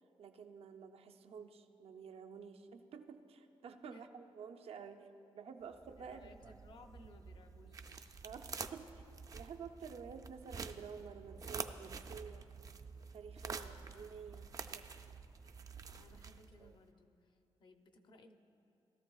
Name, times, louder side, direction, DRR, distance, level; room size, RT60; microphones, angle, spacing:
voice 1, 0.2-5.1 5.3-6.3 8.2-8.9 9.3-12.5 13.1-15.2, right 6 dB, 80° right, 6 dB, 0.6 m, -51 dB
sound 1, 5.7-16.8, right 5 dB, 35° right, 0.4 m, -48 dB
voice 2, 6.0-8.2 13.5-13.8 15.9-18.4, left 2 dB, 50° left, 6 dB, 0.6 m, -61 dB
18.0 x 13.5 x 2.4 m, 2.8 s
wide cardioid pair, 175°, 10 cm